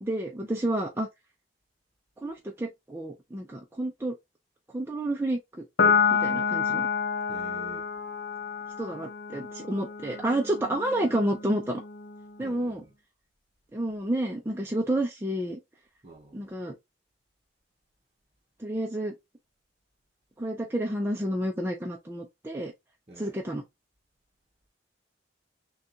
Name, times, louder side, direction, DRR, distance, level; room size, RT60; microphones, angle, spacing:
voice 1, 0.0-1.1 2.2-4.1 4.7-5.6 6.1-6.9 8.8-11.8 12.4-12.8 13.7-15.6 16.3-16.7 18.6-19.1 20.4-22.7 23.2-23.6, right 1 dB, 15° right, 0.5 m, -30 dB
Piano, 5.8-12.5, left 6 dB, 65° left, 0.7 m, -29 dB
voice 2, 7.3-7.9 12.4-12.9 16.0-16.5 23.1-23.4, right 1 dB, 35° right, 0.8 m, -47 dB
6.5 x 2.3 x 2.7 m
head